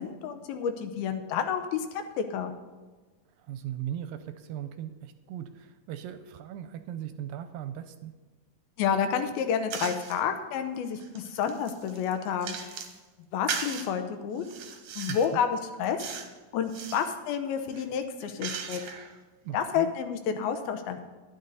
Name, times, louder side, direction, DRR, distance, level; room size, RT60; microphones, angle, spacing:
voice 1, 0.0-2.5 8.8-12.8 13.3-14.4 15.0-16.0 16.5-18.8 19.5-21.0, left 7 dB, 85° left, 7 dB, 2.8 m, -30 dB
voice 2, 3.4-8.1 15.1-15.4 19.4-19.9, right 10 dB, 80° right, 9 dB, 2.2 m, -38 dB
sound 1, 9.7-10.2 10.7-13.0 13.5-13.9 14.4-15.3 16.0-16.3 16.6-17.1 17.7-19.1, right 6 dB, 65° right, 1.7 m, -37 dB
12.0 x 10.5 x 4.0 m, 1.3 s
omnidirectional pair, 4.2 m